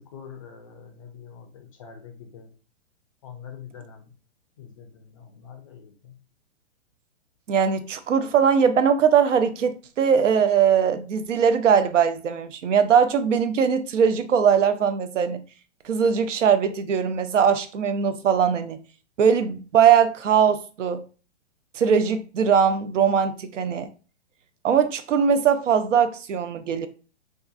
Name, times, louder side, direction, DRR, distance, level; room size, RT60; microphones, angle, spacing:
voice 1, 0.0-2.5 3.2-4.1 4.6-6.2, left 7 dB, 30° left, 0.4 m, -44 dB
voice 2, 7.5-15.4 15.8-18.8 19.2-21.0 21.7-23.9 24.6-26.9, right 7 dB, 85° right, 0.5 m, -20 dB
2.7 x 2.3 x 2.3 m
hypercardioid pair, 125°, 37 cm